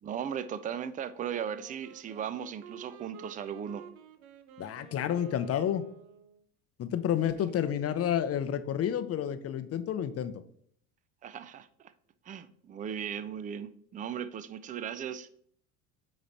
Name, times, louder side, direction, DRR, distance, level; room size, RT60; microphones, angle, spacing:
voice 1, 0.0-3.8 7.4-7.5 11.2-11.9 12.3-15.3, right 8 dB, 20° right, 13 dB, 0.4 m, -37 dB
Wind instrument woodwind instrument, 1.2-6.4, right 8 dB, 85° right, 0.8 m, -51 dB
voice 2, 4.6-5.9 6.8-10.3, left 9 dB, 35° left, 12 dB, 0.6 m, -30 dB
8.6 x 3.1 x 4.1 m, 0.65 s
hypercardioid pair, 80°, 42 cm